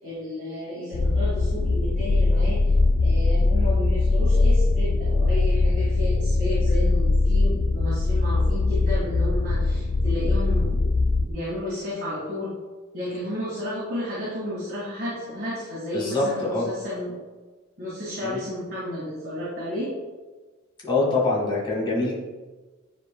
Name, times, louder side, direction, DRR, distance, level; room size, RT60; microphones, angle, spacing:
voice 1, 0.0-2.6 3.0-10.9 11.3-12.5 12.9-17.2 17.8-19.9, left 1 dB, 45° right, -8 dB, 1.8 m, -32 dB
sound 1, 0.9-11.3, left 3 dB, 60° left, 0.4 m, -21 dB
voice 2, 15.9-16.7 18.2-18.4 20.8-22.2, left 2 dB, 20° left, -4 dB, 1.7 m, -24 dB
10.0 x 4.7 x 2.2 m, 1.3 s
head